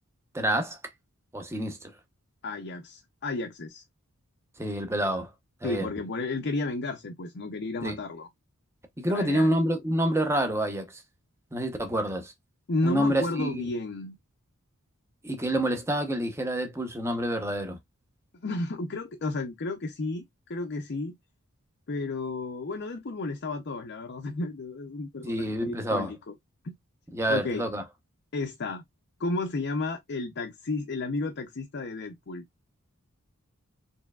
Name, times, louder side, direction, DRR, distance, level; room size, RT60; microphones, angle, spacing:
voice 1, 0.3-0.8 1.3-1.9 4.6-5.3 5.6-5.9 7.8-8.0 9.0-11.0 11.5-12.3 12.8-13.7 15.2-17.8 25.2-26.1 27.1-27.8, right 1 dB, 10° right, 0.8 m, -28 dB
voice 2, 2.4-3.8 5.6-8.3 9.0-9.6 12.7-14.2 18.4-21.1 21.9-26.3 26.6-26.7 27.3-27.6 28.3-28.8 29.2-32.4, left 2 dB, 50° left, 0.6 m, -32 dB
4.5 x 3.2 x 2.3 m
head